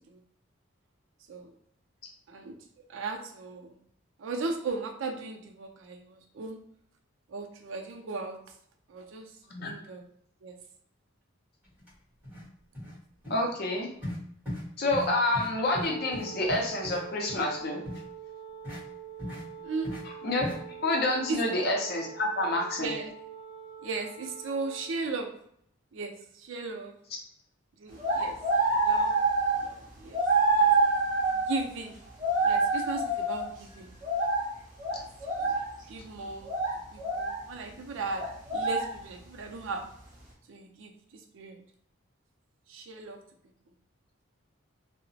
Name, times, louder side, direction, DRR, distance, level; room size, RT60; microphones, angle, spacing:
voice 1, 2.9-3.8 4.2-6.6 7.3-8.4 8.9-9.3 9.6-10.1 10.4-10.6 19.6-19.9 21.3-21.4 22.8-23.1 23.8-25.3 25.9-27.0 27.8-28.4 28.7-29.2 29.6-30.2 30.5-30.7 31.3-32.0 32.4-33.9 34.9-35.6 35.9-36.5 36.9-38.2 38.5-39.9 40.5-41.6 42.7-43.2, right 3 dB, 70° right, 4 dB, 0.4 m, -37 dB
sound 1, 11.8-11.9 12.2-12.5 12.7-13.0 13.2-13.4 14.0-14.2 14.5-14.6 14.9-15.1 15.3-15.5 15.7-17.0 17.3-17.4 17.8-18.0 18.6-18.8 19.2-19.4 19.8-20.0 20.4-20.6, left 1 dB, 10° right, 1.4 m, -37 dB
voice 2, 13.3-13.9 14.8-17.9 20.2-20.5 20.8-22.9, left 2 dB, 50° left, 1 dB, 0.5 m, -28 dB
Wind instrument woodwind instrument, 15.7-25.0, right 7 dB, 20° left, 1.0 m, -45 dB
sound 2, 28.0-29.7 30.1-31.7 32.2-33.5 34.0-34.5 34.8-35.7 36.4-37.4 38.2-38.9, right 3 dB, 40° right, 0.7 m, -26 dB
2.8 x 2.0 x 2.6 m, 0.67 s
head